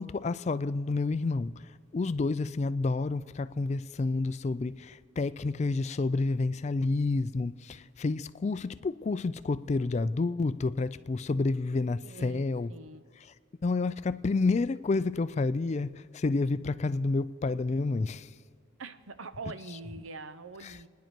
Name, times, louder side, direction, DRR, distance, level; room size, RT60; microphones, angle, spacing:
voice 1, 0.0-12.7 13.6-18.3 20.6-20.8, left 3 dB, 35° left, 0.3 m, -29 dB
voice 2, 12.0-13.0 18.8-20.9, right 3 dB, 85° right, 0.8 m, -43 dB
29.5 x 10.5 x 4.5 m
head